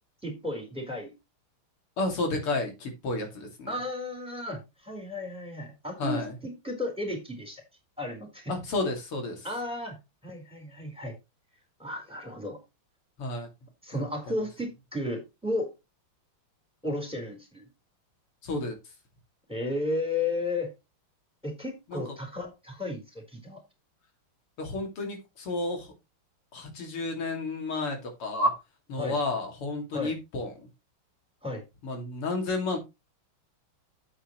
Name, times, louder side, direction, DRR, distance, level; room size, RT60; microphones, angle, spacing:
voice 1, 0.2-1.1 3.7-7.6 8.0-8.5 9.4-10.0 10.2-11.1 11.8-12.6 13.8-15.7 16.8-17.7 19.5-20.7 21.4-23.6 29.0-29.2 29.9-30.1 31.4-31.6, left 2 dB, ahead, 2 dB, 4.1 m, -33 dB
voice 2, 2.0-3.7 6.0-6.4 8.5-9.5 13.2-13.5 13.9-14.5 18.4-18.7 21.9-22.0 24.6-25.9 26.5-28.5 28.9-30.7 31.8-32.8, left 2 dB, 85° left, 3 dB, 3.5 m, -31 dB
10.5 x 8.5 x 3.2 m, 0.24 s
omnidirectional pair, 2.4 m